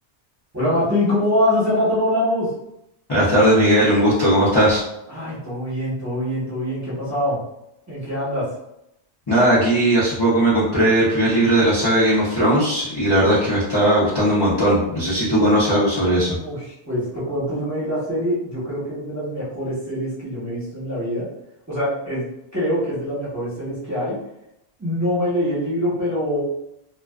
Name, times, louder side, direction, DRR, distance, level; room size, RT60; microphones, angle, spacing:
voice 1, 0.5-2.5 5.1-7.4 7.9-8.5 16.4-21.3 21.7-22.2 22.5-24.2 24.8-26.4, left 1 dB, 15° right, -10 dB, 0.7 m, -24 dB
voice 2, 3.1-4.8 9.3-16.4, right 1 dB, 30° left, -10 dB, 0.5 m, -18 dB
2.3 x 2.3 x 2.3 m, 0.82 s
omnidirectional pair, 1.2 m